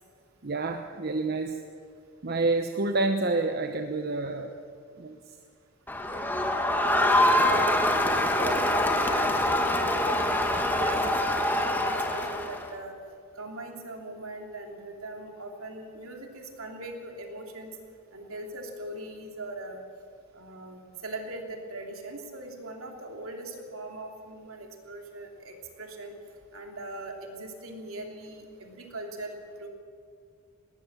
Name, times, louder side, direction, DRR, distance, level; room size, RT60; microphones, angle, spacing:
voice 1, 0.4-1.5 2.2-4.5 5.0-5.2, right 3 dB, 45° right, 5 dB, 1.0 m, -28 dB
Crowd, 5.9-12.7, left 1 dB, 10° left, 1.5 m, -25 dB
voice 2, 6.8-7.8 8.4-12.9 13.4-17.8 18.1-19.8 20.3-26.1 26.5-29.7, right 2 dB, 70° right, 2 dB, 3.1 m, -40 dB
20.0 x 18.5 x 7.3 m, 2.3 s
head